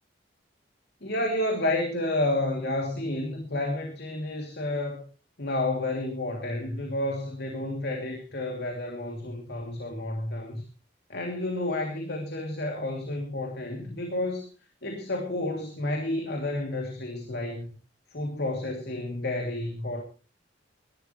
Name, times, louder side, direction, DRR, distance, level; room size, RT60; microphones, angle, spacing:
voice 1, 1.0-5.0 5.4-10.6 11.1-14.5 14.8-17.7 18.1-20.0, left 1 dB, 60° left, 2 dB, 2.8 m, -30 dB
22.0 x 12.5 x 3.2 m, 0.32 s
head